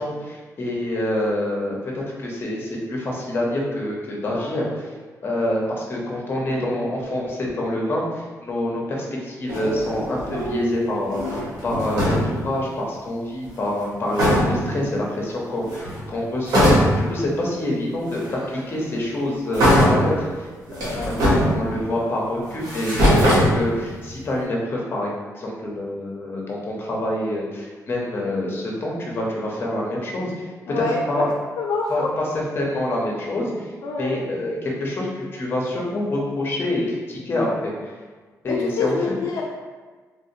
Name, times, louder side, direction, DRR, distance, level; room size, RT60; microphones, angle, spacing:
voice 1, 0.0-4.9 5.2-16.8 17.1-30.5 30.8-31.3 31.9-33.7 34.0-37.7 38.4-39.0, left 1 dB, 35° left, -3 dB, 0.7 m, -26 dB
sound 1, 9.5-10.7 11.0-12.5 13.8-13.9 14.1-14.8 15.6-16.1 16.5-17.2 18.1-18.2 19.5-20.2 20.7-22.0 22.5-24.1, equal, 85° right, 1.0 m, -20 dB
voice 2, 14.6-14.9 20.9-21.2 21.5-21.8 30.7-31.2 31.6-32.1 33.8-34.2 37.3-37.6 38.5-39.4, left 4 dB, 75° left, -1 dB, 0.3 m, -27 dB
3.2 x 2.7 x 2.7 m, 1.4 s
cardioid pair, 140°, 6 cm